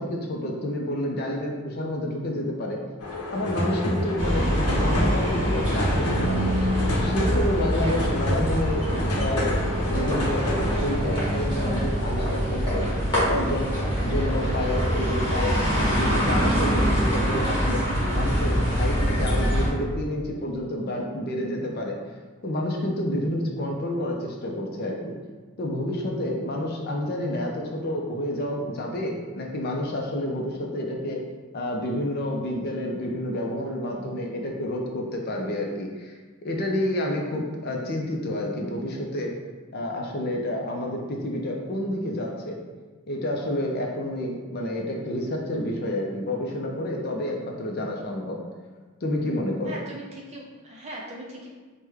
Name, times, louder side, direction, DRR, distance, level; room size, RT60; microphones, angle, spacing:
voice 1, 0.0-2.8 3.3-6.6 7.0-8.8 9.2-9.5 9.9-10.4 10.7-12.8 13.1-13.7 14.0-17.8 18.1-22.0 22.4-25.1 25.6-31.2 31.5-36.1 36.4-39.3 39.7-42.6 43.1-48.4 49.0-49.8, left 1 dB, 45° left, 0 dB, 0.4 m, -29 dB
sound 1, 3.0-11.0, left 2 dB, 90° left, 0.7 m, -30 dB
sound 2, 4.2-19.7, equal, 20° left, 1.2 m, -24 dB
voice 2, 49.7-51.5, right 1 dB, 30° right, -3 dB, 0.6 m, -39 dB
4.7 x 2.1 x 3.4 m, 1.4 s
head